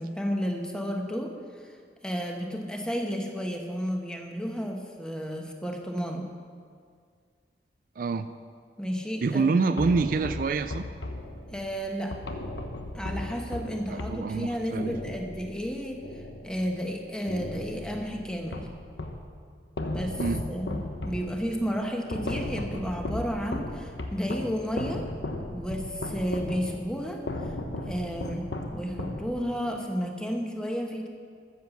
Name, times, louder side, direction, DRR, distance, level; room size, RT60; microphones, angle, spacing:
voice 1, 0.0-1.7 2.0-6.3 8.8-9.7 11.5-12.2 12.9-18.7 19.9-20.2 20.5-25.1 25.5-27.5 27.9-31.1, equal, 5° left, 2 dB, 1.2 m, -32 dB
voice 2, 8.0-8.3 9.2-10.9 13.9-14.9 20.2-20.4, right 4 dB, 50° right, 10 dB, 0.4 m, -26 dB
sound 1, 9.8-16.9 17.3-19.3 19.8-29.7, left 1 dB, 85° left, 1.1 m, -36 dB
13.5 x 7.5 x 7.1 m, 2.1 s
head